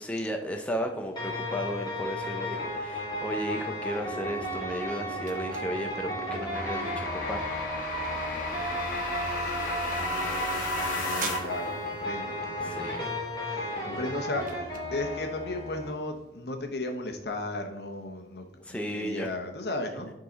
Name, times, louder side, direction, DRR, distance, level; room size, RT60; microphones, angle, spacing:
voice 1, 0.0-7.6 7.8-8.1 12.6-13.2 18.6-19.3, equal, 5° left, 3 dB, 0.5 m, -34 dB
sound 1, 1.2-15.9, left 1 dB, 25° left, 2.3 m, -34 dB
sound 2, 4.4-18.8, right 5 dB, 50° right, 0.8 m, -49 dB
sound 3, 6.5-11.7, left 1 dB, 50° left, 1.5 m, -33 dB
voice 2, 9.1-13.0 13.4-20.1, left 2 dB, 65° left, 4 dB, 1.0 m, -36 dB
9.6 x 3.9 x 4.0 m, 0.96 s
head